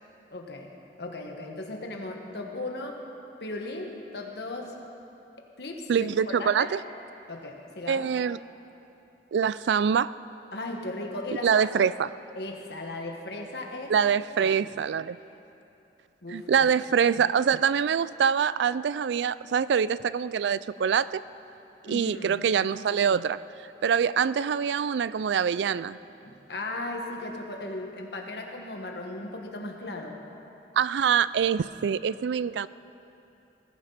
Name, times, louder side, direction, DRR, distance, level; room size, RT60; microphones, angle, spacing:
voice 1, 0.3-3.0 3.4-4.8 5.6-6.7 7.3-8.1 10.5-11.7 12.4-14.0 14.4-14.6 16.2-16.7 21.9-22.5 26.2-30.2, left 2 dB, 70° left, 2 dB, 1.7 m, -37 dB
voice 2, 5.9-6.8 7.9-8.4 9.3-10.1 11.4-12.1 13.9-15.2 16.3-21.2 21.8-23.4 23.8-26.0 30.8-32.7, right 7 dB, 80° right, 17 dB, 0.3 m, -24 dB
20.0 x 14.5 x 4.2 m, 2.9 s
head